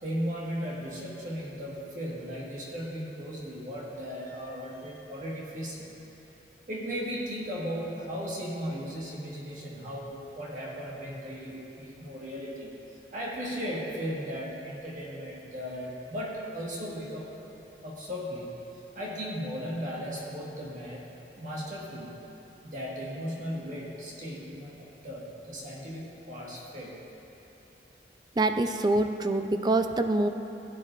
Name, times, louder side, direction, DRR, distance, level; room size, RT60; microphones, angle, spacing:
voice 1, 0.0-5.9 6.7-12.8 13.1-17.3 17.8-18.5 18.9-21.1 21.4-22.2 22.6-26.9, equal, 45° right, -5 dB, 1.6 m, -36 dB
voice 2, 28.4-30.3, right 2 dB, 25° right, 7 dB, 0.4 m, -25 dB
16.5 x 10.0 x 2.5 m, 3.0 s
head